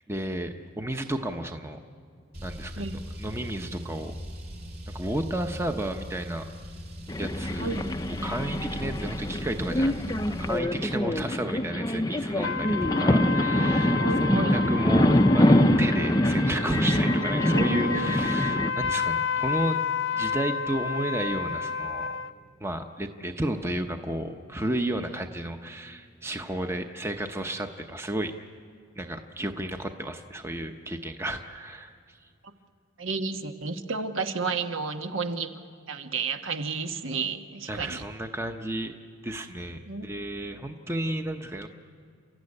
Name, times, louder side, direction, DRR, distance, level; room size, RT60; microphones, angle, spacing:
voice 1, 0.1-1.8 2.4-2.8 3.2-4.2 4.9-6.5 7.2-7.7 8.1-14.0 14.3-19.8 20.1-22.2 22.6-28.3 29.0-32.2 37.7-39.0 39.2-41.7, right 1 dB, 10° right, 5 dB, 0.8 m, -32 dB
Car, 2.3-10.6, equal, 50° right, 2.6 m, -39 dB
sound 1, 7.1-18.7, left 1 dB, 20° left, 0.6 m, -24 dB
voice 2, 7.6-7.9 14.0-14.6 17.5-18.1 33.0-35.6 35.9-38.0 39.9-40.1, right 4 dB, 75° right, 7 dB, 1.3 m, -31 dB
sound 2, 12.4-22.3, left 5 dB, 65° left, 0.7 m, -31 dB
29.5 x 14.0 x 9.8 m, 2.4 s
head